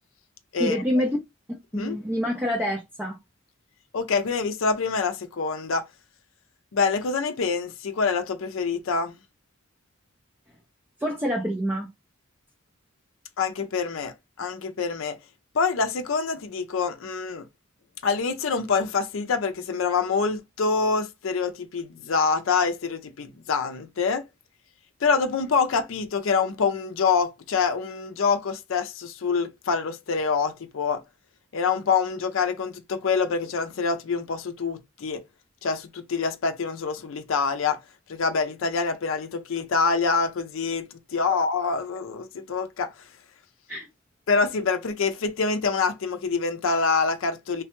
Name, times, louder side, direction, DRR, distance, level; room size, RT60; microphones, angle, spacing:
voice 1, 0.6-1.2 1.7-3.2 11.0-11.9 43.7-43.9, equal, 10° right, 0.4 m, -26 dB
voice 2, 3.9-5.8 6.7-9.1 13.4-15.2 15.5-17.5 18.0-24.3 25.0-31.0 31.5-35.2 35.6-37.8 38.1-42.9 44.3-47.6, left 5 dB, 70° left, 0.5 m, -26 dB
3.2 x 2.2 x 2.9 m
head